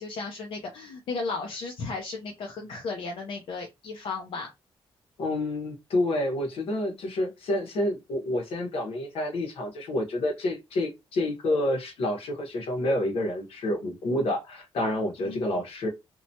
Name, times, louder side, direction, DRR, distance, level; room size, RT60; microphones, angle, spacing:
voice 1, 0.0-4.5 15.3-15.4, left 3 dB, 65° left, 0.5 m, -35 dB
voice 2, 5.2-15.9, left 1 dB, 80° left, 1.0 m, -28 dB
2.9 x 2.1 x 2.6 m
wide cardioid pair, 175°, 10 cm